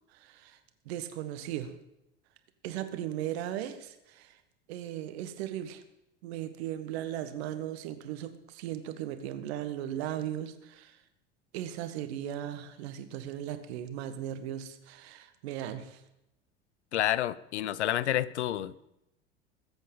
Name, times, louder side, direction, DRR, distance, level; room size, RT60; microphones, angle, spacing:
voice 1, 0.1-0.6 0.8-1.7 2.6-4.4 4.7-5.8 6.2-11.0 11.5-16.0, right 11 dB, 60° right, 9 dB, 1.6 m, -37 dB
voice 2, 16.9-18.9, left 12 dB, 70° left, 18 dB, 0.7 m, -29 dB
21.0 x 8.1 x 5.5 m, 0.87 s
figure-of-eight pair, 70°, 35 cm